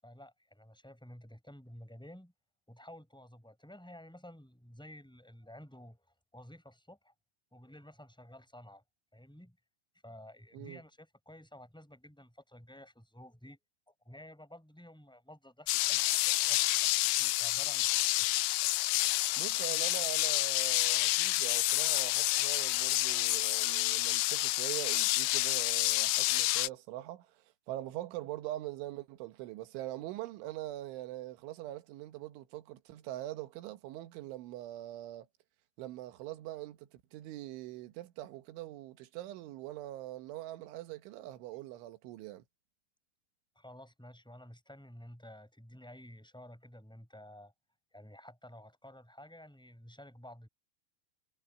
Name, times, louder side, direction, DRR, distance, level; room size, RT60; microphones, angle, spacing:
voice 1, 0.0-2.3 2.7-6.1 6.3-7.1 7.5-8.8 9.1-9.6 10.0-13.6 14.0-16.9 17.2-18.3 43.5-47.5 47.9-50.5, left 1 dB, ahead, 7.4 m, -52 dB
sound 1, 15.7-26.7, left 19 dB, 85° left, 3.0 m, -29 dB
voice 2, 19.4-35.3 35.8-42.5, right 15 dB, 80° right, 3.7 m, -43 dB
omnidirectional pair, 5.4 m